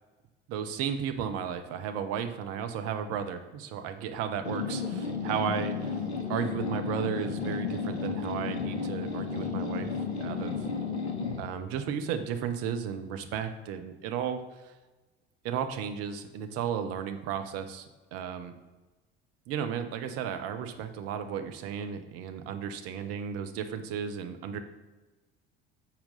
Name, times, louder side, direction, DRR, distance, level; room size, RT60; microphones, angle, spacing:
voice 1, 0.5-5.9 6.3-10.7 11.4-14.7 15.4-18.6 19.5-24.6, right 8 dB, 50° right, 7 dB, 0.7 m, -34 dB
sound 1, 4.4-11.5, left 5 dB, 85° left, 0.6 m, -33 dB
7.4 x 4.3 x 3.9 m, 1.2 s
figure-of-eight pair, 65°, 32 cm